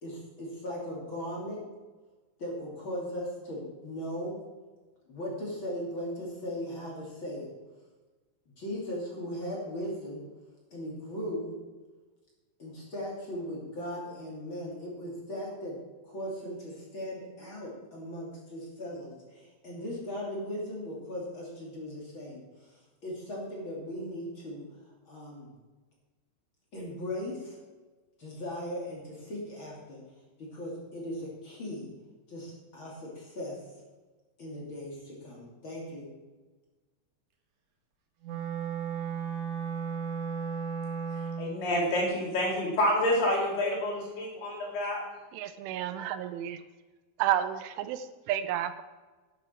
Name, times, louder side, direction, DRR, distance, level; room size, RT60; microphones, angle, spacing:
voice 1, 0.0-1.6 2.4-4.4 5.1-7.5 8.6-10.2 10.7-11.6 12.6-15.8 16.0-24.6 25.1-25.5 26.7-27.6 28.2-30.0 30.4-31.9 32.3-33.6 34.4-36.2, equal, 30° left, -3 dB, 2.7 m, -38 dB
Wind instrument woodwind instrument, 38.2-41.6, right 6 dB, 60° right, 2.1 m, -34 dB
voice 2, 41.4-45.0, left 1 dB, 60° left, -2 dB, 5.1 m, -28 dB
voice 3, 45.3-46.6 47.2-48.8, right 11 dB, 85° right, 11 dB, 3.1 m, -31 dB
12.0 x 10.0 x 4.6 m, 1.3 s
omnidirectional pair, 5.6 m